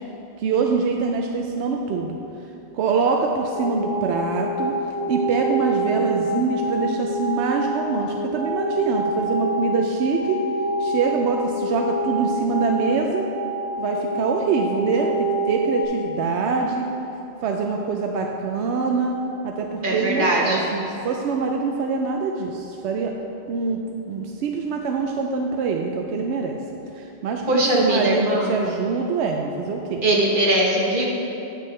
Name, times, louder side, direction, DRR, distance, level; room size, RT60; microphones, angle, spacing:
voice 1, 0.4-2.2 2.7-4.8 5.1-10.4 10.8-13.3 13.8-16.9 17.4-19.1 19.4-23.1 23.5-23.8 24.1-26.6 26.9-30.0, right 4 dB, 80° right, 2 dB, 0.8 m, -24 dB
sound 1, 3.5-15.9, right 1 dB, 90° left, 1.5 m, -26 dB
voice 2, 19.8-20.6 27.5-28.5 30.0-31.0, right 1 dB, 50° right, -3 dB, 1.3 m, -20 dB
9.7 x 7.7 x 3.2 m, 3.0 s
omnidirectional pair, 1.1 m